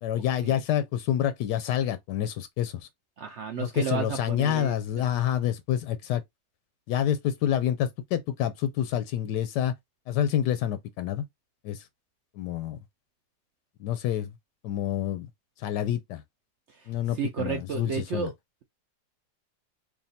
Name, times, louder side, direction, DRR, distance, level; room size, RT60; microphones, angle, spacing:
voice 1, 0.0-2.9 3.6-6.2 6.9-9.7 10.1-11.2 11.6-11.9 12.4-12.8 13.8-14.3 14.6-15.3 15.6-16.2 16.9-18.3, left 10 dB, 85° left, 1.2 m, -28 dB
voice 2, 3.2-4.7 17.2-18.3, right 7 dB, 70° right, 0.6 m, -32 dB
3.5 x 2.5 x 4.0 m
omnidirectional pair, 1.8 m